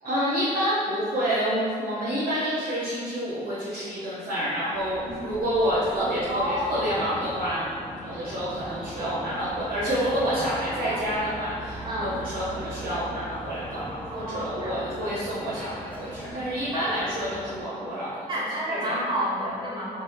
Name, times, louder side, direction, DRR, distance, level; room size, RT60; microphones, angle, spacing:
voice 1, 0.0-18.3 18.7-19.0, equal, 50° right, -10 dB, 0.9 m, -28 dB
sound 1, 4.7-17.6, equal, 5° left, 0.6 m, -40 dB
voice 2, 6.3-6.9 10.7-11.0 11.8-12.2 14.1-14.8 18.3-20.0, equal, 25° right, -6 dB, 1.0 m, -30 dB
3.2 x 2.3 x 2.8 m, 2.1 s
hypercardioid pair, 45°, 19 cm